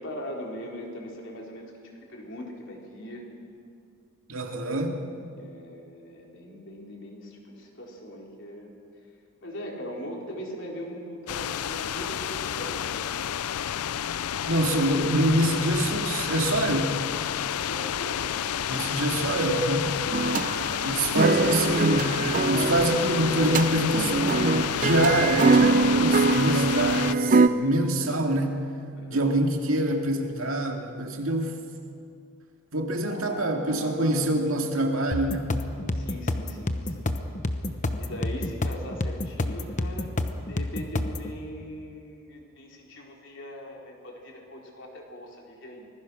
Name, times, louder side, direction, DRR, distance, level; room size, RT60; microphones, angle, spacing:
voice 1, 0.0-1.7 2.1-3.3 5.4-8.7 9.4-13.1 17.4-18.5 20.9-21.7 28.9-29.3 33.0-34.4 35.9-37.1 38.0-40.1 40.5-45.9, equal, 55° left, -1 dB, 4.2 m, -40 dB
voice 2, 4.3-5.0 14.5-17.0 18.7-19.9 20.8-28.6 29.1-31.6 32.7-35.6, right 1 dB, 70° right, 3 dB, 2.3 m, -25 dB
sound 1, 11.3-27.1, left 9 dB, 85° left, 0.5 m, -30 dB
sound 2, 20.1-27.5, right 3 dB, 35° right, 0.6 m, -23 dB
sound 3, 35.1-41.3, left 1 dB, 35° left, 1.0 m, -29 dB
25.5 x 20.5 x 6.3 m, 2.5 s
head